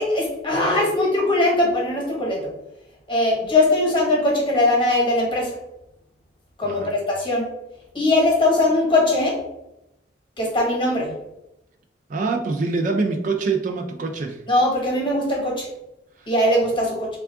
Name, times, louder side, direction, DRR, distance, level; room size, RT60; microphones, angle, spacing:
voice 1, 0.0-2.4 3.1-5.5 6.6-7.5 7.9-9.4 10.4-11.1 14.5-15.7 16.3-17.1, left 2 dB, 25° left, -1 dB, 1.0 m, -20 dB
voice 2, 6.6-7.0 12.1-14.4 16.2-16.3, right 3 dB, 45° right, 4 dB, 0.3 m, -25 dB
3.5 x 2.4 x 3.4 m, 0.87 s
head